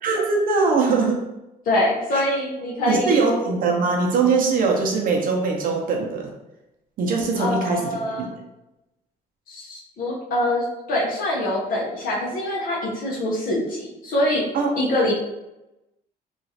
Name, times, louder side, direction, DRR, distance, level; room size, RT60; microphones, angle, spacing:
voice 1, 0.0-1.3 2.1-2.2 2.8-6.3 7.0-8.3 14.5-14.7, right 4 dB, 55° right, 0 dB, 0.6 m, -21 dB
voice 2, 1.7-3.2 7.4-8.3 9.5-14.4 14.8-15.1, left 1 dB, 55° left, -4 dB, 0.7 m, -24 dB
2.9 x 2.4 x 2.7 m, 0.94 s
cardioid pair, 110°, 17 cm